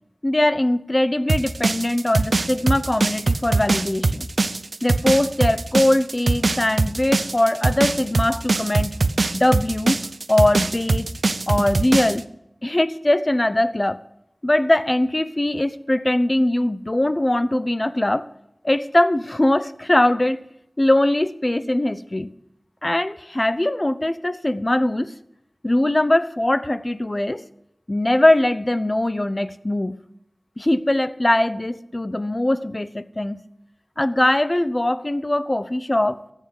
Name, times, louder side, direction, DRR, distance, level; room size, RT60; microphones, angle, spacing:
voice 1, 0.2-4.3 4.8-9.0 9.3-10.0 10.3-11.1 11.5-12.3 12.6-14.0 14.4-18.3 18.6-20.4 20.8-22.3 22.8-25.1 25.6-27.4 27.9-30.0 30.6-33.4 34.0-36.2, left 1 dB, 35° left, 14 dB, 0.8 m, -21 dB
sound 1, 1.3-12.2, right 3 dB, 85° right, 0.6 m, -22 dB
14.0 x 8.3 x 6.7 m, 0.81 s
wide cardioid pair, 50°, 0 cm